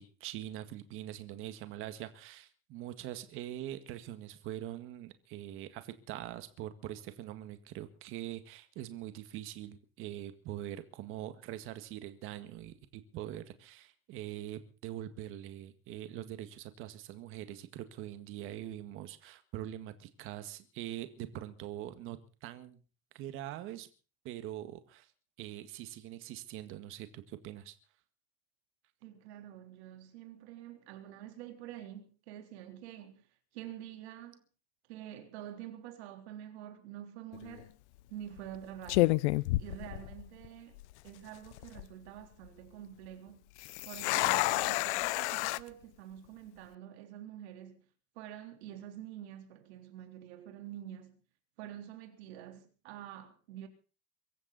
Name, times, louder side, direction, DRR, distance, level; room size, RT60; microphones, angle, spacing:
voice 1, 0.0-22.8 23.1-23.9 24.2-25.1 25.4-27.8, right 13 dB, 40° right, 1.8 m, -43 dB
voice 2, 29.0-33.2 33.5-34.4 34.9-37.7 38.1-39.2 39.6-43.4 43.8-47.9 48.2-51.2 51.6-53.7, right 11 dB, 75° right, 3.7 m, -47 dB
sound 1, 37.3-37.6 38.4-38.6 38.9-40.5 40.8-40.9 41.5-41.9 43.6-45.6, left 20 dB, 85° left, 0.8 m, -30 dB
23.5 x 14.5 x 4.1 m
cardioid pair, 170°, 33 cm